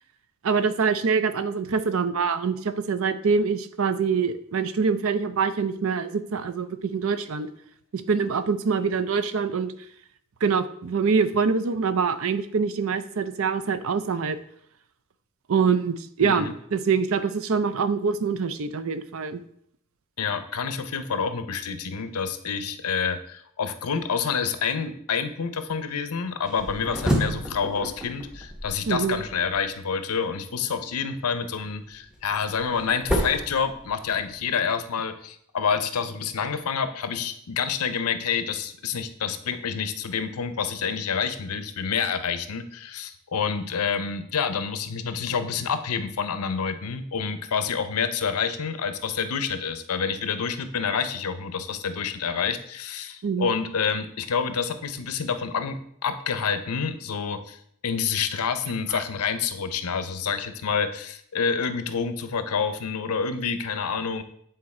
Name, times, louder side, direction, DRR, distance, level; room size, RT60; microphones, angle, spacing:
voice 1, 0.4-7.5 7.9-9.7 10.4-14.4 15.5-19.4 28.9-29.2 53.2-53.5 58.9-59.0, right 5 dB, 65° right, 11 dB, 0.5 m, -25 dB
voice 2, 16.2-16.5 20.2-57.6 57.8-64.2, left 6 dB, 85° left, 10 dB, 0.6 m, -28 dB
Fridge Door Open Close, 26.5-29.6 31.8-34.4, equal, 5° right, 0.7 m, -30 dB
8.6 x 3.8 x 4.2 m, 0.68 s
head